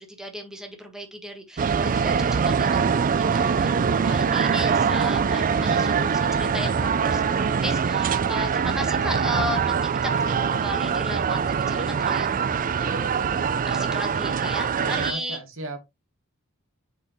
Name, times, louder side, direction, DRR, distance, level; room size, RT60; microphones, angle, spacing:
voice 1, 0.0-2.9 3.2-13.2 13.7-15.4, equal, 5° right, 1.4 m, -35 dB
sound 1, 1.6-15.1, right 6 dB, 40° right, 0.4 m, -23 dB
voice 2, 4.4-5.0 5.6-5.9 14.8-15.8, right 1 dB, 60° right, 1.3 m, -35 dB
6.3 x 5.3 x 3.1 m
head